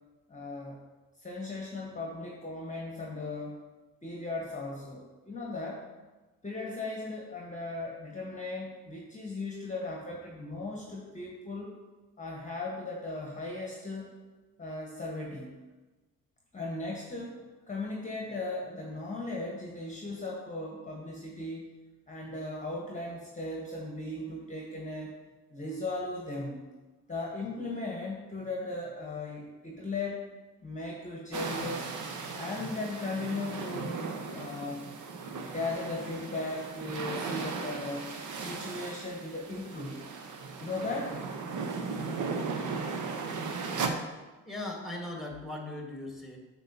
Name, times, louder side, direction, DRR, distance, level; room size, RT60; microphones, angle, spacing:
voice 1, 0.3-0.8 1.2-3.6 4.0-5.8 6.4-11.7 12.2-14.1 14.6-15.5 16.5-21.7 22.1-25.1 25.5-26.6 27.1-30.2 30.6-32.0 32.3-34.0 34.3-34.8 35.4-38.0 38.4-40.0 40.6-41.2, left 2 dB, 15° left, -1 dB, 1.3 m, -37 dB
sound 1, 31.3-43.9, right 4 dB, 40° right, 1.0 m, -37 dB
voice 2, 44.5-46.4, left 2 dB, ahead, 1 dB, 1.7 m, -38 dB
8.8 x 5.9 x 2.9 m, 1.2 s
hypercardioid pair, 50°, 45 cm